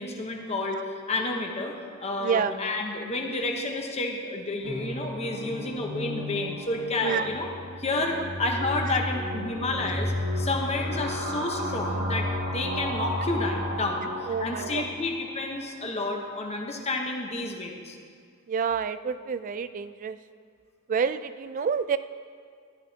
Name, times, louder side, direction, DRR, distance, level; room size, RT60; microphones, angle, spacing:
voice 1, 0.0-7.5 7.8-18.0, left 2 dB, 30° left, 1 dB, 1.0 m, -30 dB
voice 2, 2.2-2.5 7.0-7.3 8.2-8.3 14.3-14.9 18.5-20.2 20.9-22.0, right 6 dB, 40° right, 13 dB, 0.3 m, -28 dB
sound 1, 4.6-15.4, left 1 dB, 75° right, 2.0 m, -33 dB
12.0 x 12.0 x 2.8 m, 2.1 s
head